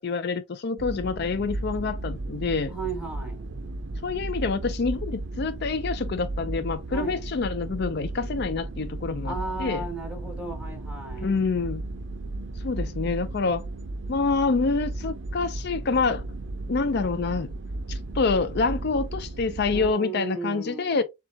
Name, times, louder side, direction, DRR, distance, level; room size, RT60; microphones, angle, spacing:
voice 1, 0.0-2.7 4.0-9.3 9.6-9.8 11.2-11.8 12.6-13.6 14.1-16.2 16.7-17.5 17.9-21.0, left 4 dB, 55° left, 0.5 m, -27 dB
sound 1, 0.8-19.9, right 2 dB, 65° right, 0.6 m, -34 dB
voice 2, 2.7-3.5 6.9-7.2 9.2-11.3 19.7-21.0, right 3 dB, 5° right, 1.8 m, -35 dB
7.1 x 2.4 x 2.7 m
head